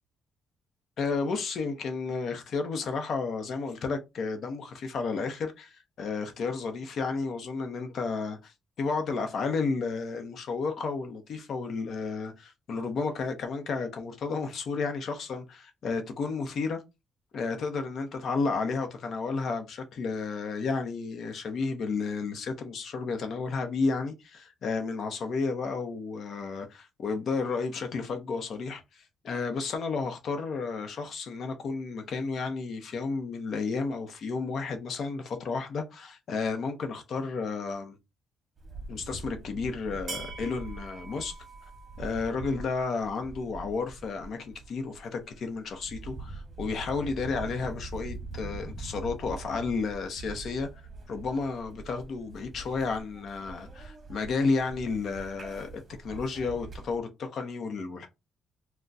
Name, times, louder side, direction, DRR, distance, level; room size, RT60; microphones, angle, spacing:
voice 1, 1.0-16.8 17.3-38.0 38.9-41.4 42.0-50.7 51.1-55.7 56.0-58.1, left 4 dB, 60° left, 0.8 m, -32 dB
sound 1, 38.6-57.0, right 3 dB, 40° right, 0.9 m, -43 dB
2.3 x 2.2 x 3.9 m
cardioid pair, 90°, 0 cm